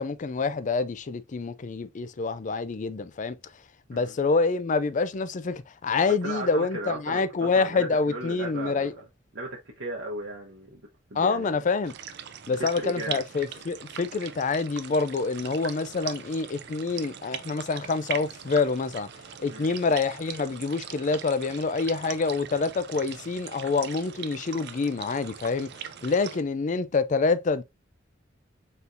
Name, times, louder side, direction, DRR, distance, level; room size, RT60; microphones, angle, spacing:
voice 1, 0.0-3.4 3.9-8.9 11.2-11.9 12.5-19.1 19.4-27.6, left 4 dB, 40° left, 0.4 m, -27 dB
voice 2, 6.2-9.0 9.3-10.8 11.1-11.6 12.6-13.2 19.5-19.7, right 2 dB, 75° right, 0.9 m, -36 dB
sound 1, 11.8-26.4, right 9 dB, 60° right, 0.5 m, -41 dB
4.3 x 3.5 x 2.6 m
head